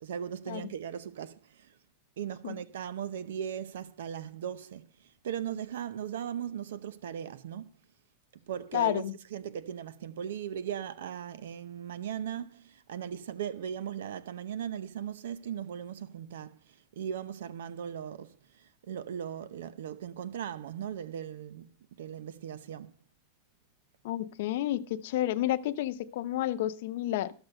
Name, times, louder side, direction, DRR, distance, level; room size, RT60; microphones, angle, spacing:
voice 1, 0.0-1.8 2.2-7.7 8.5-9.0 9.3-21.7 22.0-22.9, right 9 dB, 90° right, 0.7 m, -38 dB
voice 2, 8.7-9.1 24.0-27.3, left 13 dB, 55° left, 0.7 m, -30 dB
13.5 x 6.2 x 6.4 m
supercardioid pair, 175°, 0 cm